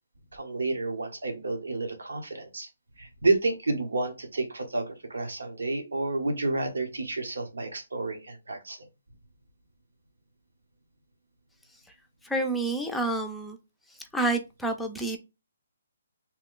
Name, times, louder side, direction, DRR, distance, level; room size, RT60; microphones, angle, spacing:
voice 1, 0.3-2.7 3.0-8.9, right 2 dB, 85° right, 1.0 m, -30 dB
voice 2, 12.2-13.6 14.1-15.2, right 2 dB, 5° left, 0.5 m, -28 dB
3.0 x 2.3 x 3.7 m
hypercardioid pair, 150°, 0 cm